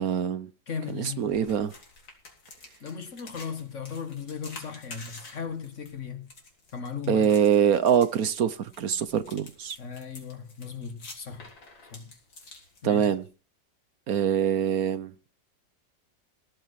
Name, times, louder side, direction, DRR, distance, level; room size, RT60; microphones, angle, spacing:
voice 1, 0.0-0.5 0.9-1.7 7.1-9.8 12.8-13.2 14.1-15.1, right 8 dB, 60° right, 1.1 m, -24 dB
voice 2, 0.7-1.4 2.8-6.3 6.7-7.3 9.8-11.5 11.9-12.1 12.8-13.1, left 6 dB, 45° left, 1.6 m, -37 dB
sound 1, 0.8-13.3, left 3 dB, 90° left, 4.5 m, -49 dB
17.5 x 9.0 x 5.8 m
omnidirectional pair, 2.0 m